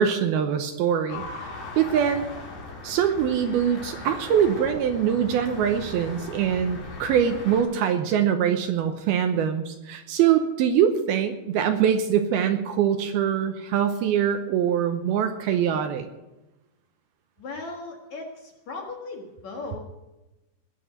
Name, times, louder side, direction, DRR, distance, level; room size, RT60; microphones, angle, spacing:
voice 1, 0.0-2.3 2.8-16.1, right 8 dB, 75° right, 7 dB, 2.5 m, -23 dB
sound 1, 1.1-7.6, left 3 dB, 80° left, 6.8 m, -39 dB
voice 2, 17.4-19.8, left 3 dB, 50° left, 1 dB, 2.5 m, -37 dB
20.5 x 7.1 x 7.8 m, 1.0 s
omnidirectional pair, 4.9 m